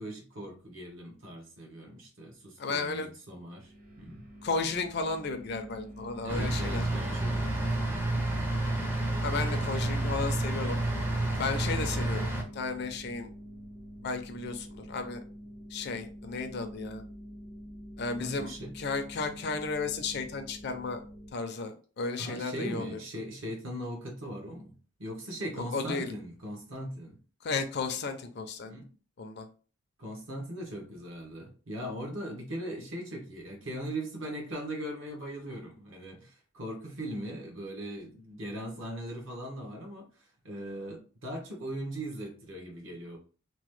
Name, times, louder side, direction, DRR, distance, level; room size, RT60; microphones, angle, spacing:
voice 1, 0.0-4.2 6.2-7.5 9.3-9.6 18.2-18.7 22.2-27.2 28.7-28.9 30.0-43.2, right 1 dB, 65° right, 1 dB, 1.0 m, -39 dB
voice 2, 2.6-3.1 4.4-6.8 9.2-10.8 11.3-13.3 14.0-15.2 15.7-17.0 18.0-21.0 21.3-23.0 25.7-26.1 27.4-28.7 29.2-29.5, left 4 dB, 50° left, 7 dB, 0.4 m, -34 dB
sound 1, 3.6-21.3, equal, 35° right, 0.8 m, -47 dB
sound 2, 6.3-12.4, right 1 dB, 10° right, 0.4 m, -30 dB
2.9 x 2.1 x 3.1 m, 0.38 s
head